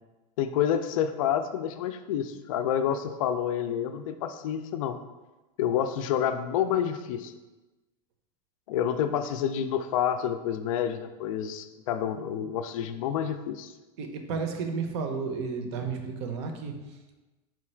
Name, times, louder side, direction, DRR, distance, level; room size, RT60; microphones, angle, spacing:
voice 1, 0.4-5.0 5.6-7.3 8.7-13.7, left 9 dB, 70° left, 9 dB, 0.4 m, -28 dB
voice 2, 14.0-16.7, right 5 dB, 50° right, 5 dB, 0.6 m, -32 dB
4.4 x 2.3 x 4.4 m, 1.1 s
supercardioid pair, 170°, 18 cm